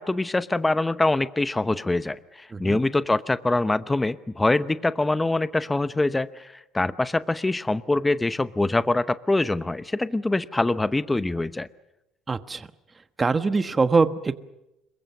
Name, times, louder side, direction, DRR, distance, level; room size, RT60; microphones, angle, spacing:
voice 1, 0.0-11.7, left 2 dB, 10° left, 13 dB, 0.8 m, -24 dB
voice 2, 12.3-12.7 13.2-14.4, right 4 dB, 20° right, 11 dB, 1.1 m, -23 dB
27.0 x 23.0 x 6.7 m, 0.92 s
cardioid pair, 130°, 0 cm